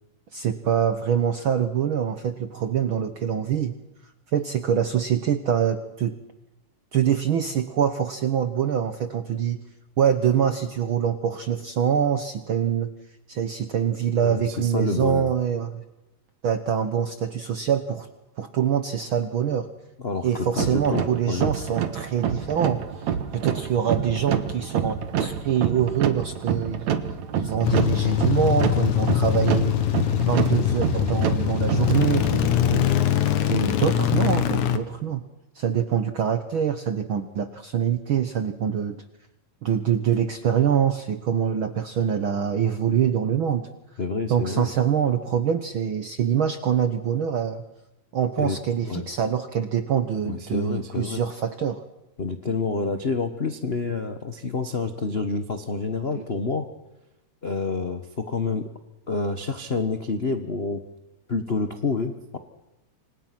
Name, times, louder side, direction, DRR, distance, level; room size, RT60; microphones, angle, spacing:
voice 1, 0.3-3.7 4.3-6.1 6.9-9.6 10.0-12.9 13.3-15.8 16.4-18.1 18.4-19.7 20.2-22.8 23.3-26.9 27.3-29.8 30.2-33.0 33.5-35.2 35.5-39.0 39.6-43.7 44.3-47.6 48.1-51.8 56.1-56.2, right 8 dB, 60° right, 10 dB, 1.5 m, -24 dB
voice 2, 14.2-15.3 20.0-21.5 44.0-44.7 48.4-48.6 48.8-49.0 50.2-51.2 52.2-56.7 57.4-58.7 59.1-60.8 61.3-62.4, left 4 dB, 50° left, 8 dB, 0.7 m, -28 dB
sound 1, 20.5-32.4, right 8 dB, 75° right, 2.8 m, -28 dB
sound 2, 27.6-34.8, left 10 dB, 85° left, 2.9 m, -22 dB
29.0 x 25.5 x 6.0 m, 0.95 s
omnidirectional pair, 3.3 m